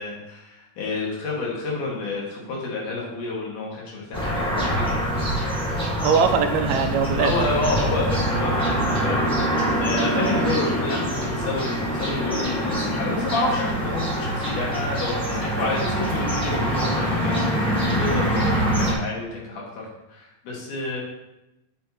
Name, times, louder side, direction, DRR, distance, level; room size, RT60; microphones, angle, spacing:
voice 1, 0.0-4.9 7.2-21.0, left 2 dB, 90° left, -4 dB, 3.4 m, -29 dB
sound 1, 4.1-18.9, equal, 5° left, 0.5 m, -24 dB
voice 2, 6.0-7.3, right 6 dB, 75° right, 7 dB, 1.8 m, -21 dB
7.7 x 6.6 x 3.0 m, 0.93 s
omnidirectional pair, 3.5 m